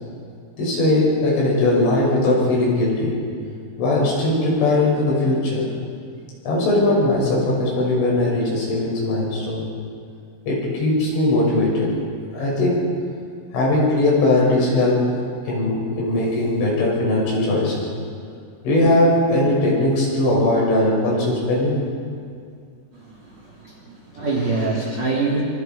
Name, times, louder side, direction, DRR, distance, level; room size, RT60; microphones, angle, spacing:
voice 1, 0.6-3.1 3.8-5.7 6.5-9.6 10.5-11.9 12.3-12.8 13.5-15.0 15.5-17.8 18.7-21.8, left 2 dB, 75° left, -4 dB, 8.8 m, -19 dB
voice 2, 22.9-25.4, right 3 dB, 40° right, -4 dB, 3.9 m, -25 dB
27.0 x 25.0 x 4.7 m, 2.3 s
omnidirectional pair, 5.6 m